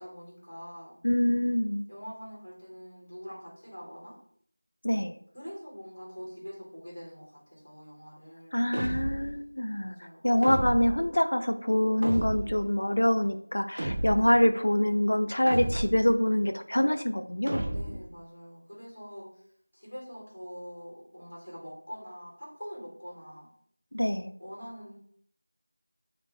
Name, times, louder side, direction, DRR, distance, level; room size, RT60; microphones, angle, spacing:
voice 1, 0.0-1.0 1.9-4.1 5.3-8.7 9.8-10.7 14.1-14.6 17.7-19.4 19.7-23.5 24.4-25.0, equal, 20° left, -7 dB, 2.0 m, -44 dB
voice 2, 1.0-1.8 4.8-5.2 8.5-10.0 10.2-17.7 23.9-24.3, left 1 dB, 45° left, 7 dB, 0.3 m, -25 dB
sound 1, 8.7-9.4 10.4-11.1 12.0-12.7 13.8-14.4 15.5-16.1 17.5-18.1, right 1 dB, 20° right, 0.4 m, -32 dB
6.5 x 2.2 x 3.4 m, 0.62 s
figure-of-eight pair, 175°, 0 cm